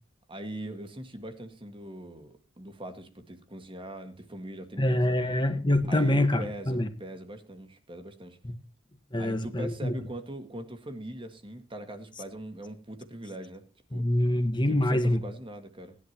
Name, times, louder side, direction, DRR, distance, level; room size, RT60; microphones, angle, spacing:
voice 1, 0.3-5.2 5.9-8.4 9.2-13.6 13.9-14.1 14.7-16.0, right 1 dB, 25° right, 7 dB, 1.8 m, -41 dB
voice 2, 4.8-6.9 8.4-8.5 9.1-9.9 13.9-15.2, left 1 dB, 25° left, 8 dB, 1.4 m, -25 dB
18.0 x 11.0 x 2.9 m, 0.35 s
head